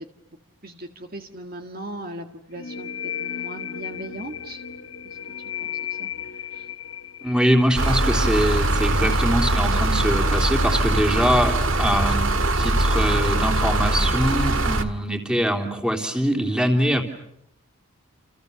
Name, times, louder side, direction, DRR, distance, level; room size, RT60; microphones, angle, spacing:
voice 1, 0.6-2.9 3.2-4.6 5.0-5.2 5.6-5.7 6.0-6.1 6.5-6.7, right 1 dB, 40° right, 5 dB, 1.8 m, -38 dB
sound 1, 2.6-10.0, left 9 dB, 60° left, 1.5 m, -35 dB
voice 2, 7.2-12.2 12.5-17.0, equal, 5° right, 4 dB, 3.3 m, -23 dB
sound 2, 7.8-14.8, right 1 dB, 60° right, 1.9 m, -21 dB
29.5 x 29.0 x 7.0 m, 0.76 s
head